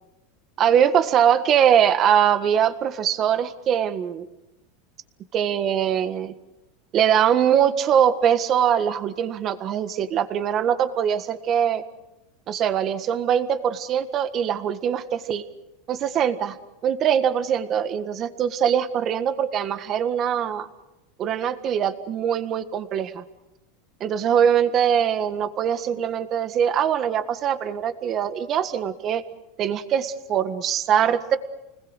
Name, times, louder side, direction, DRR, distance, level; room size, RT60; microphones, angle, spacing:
voice 1, 0.6-4.3 5.3-6.4 6.9-11.8 12.5-15.4 15.9-16.6 16.8-20.7 21.2-23.2 24.0-29.2 29.6-31.4, right 9 dB, 35° right, 10 dB, 1.6 m, -22 dB
30.0 x 20.5 x 6.5 m, 0.95 s
supercardioid pair, 135°, 0 cm